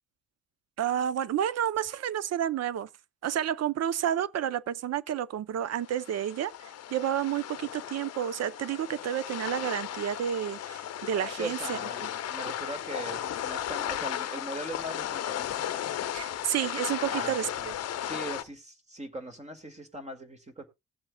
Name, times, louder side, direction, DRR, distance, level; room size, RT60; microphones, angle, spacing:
voice 1, 0.8-2.9 3.2-12.1 16.1-17.7, right 10 dB, 55° right, 0.7 m, -30 dB
sound 1, 5.8-18.4, left 11 dB, 55° left, 0.7 m, -35 dB
voice 2, 11.4-15.5 17.1-17.3 17.6-17.7 18.0-20.6, right 1 dB, 25° right, 2.1 m, -40 dB
19.0 x 7.5 x 2.3 m
cardioid pair, 90°, 30 cm